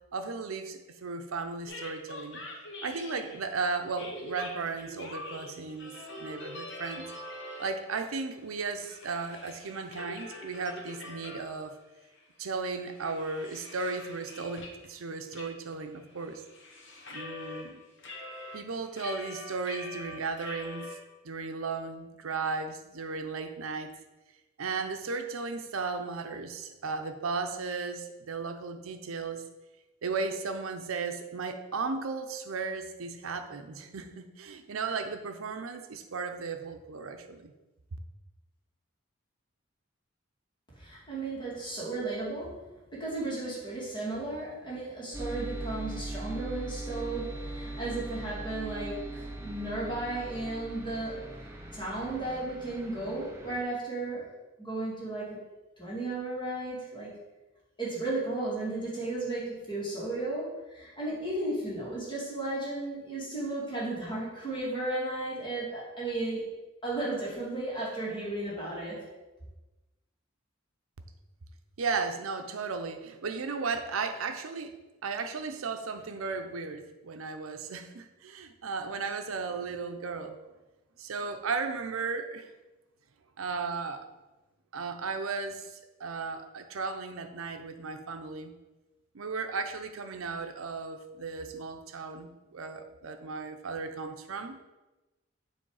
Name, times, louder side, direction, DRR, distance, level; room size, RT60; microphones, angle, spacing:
voice 1, 0.1-2.4 2.8-7.1 7.6-11.8 12.4-16.4 17.1-17.8 18.5-20.9 21.2-23.9 24.6-29.4 30.0-37.5 71.8-74.7 75.0-80.4 81.0-82.5 83.4-84.1 84.7-88.5 89.1-94.6, right 4 dB, 90° right, 7 dB, 0.6 m, -35 dB
sound 1, 1.7-3.5 4.0-8.0 8.3-11.8 12.1-12.2 12.6-14.9 15.3-15.5 15.7-17.7 18.0-21.0, left 2 dB, 60° left, 1.0 m, -44 dB
voice 2, 40.8-42.6 42.9-54.3 54.6-55.4 55.8-57.1 57.8-66.5 66.8-69.1, right 2 dB, 25° left, -7 dB, 2.2 m, -34 dB
sound 2, 45.1-53.6, right 1 dB, 10° right, 0.6 m, -40 dB
7.0 x 3.2 x 4.8 m, 1.1 s
head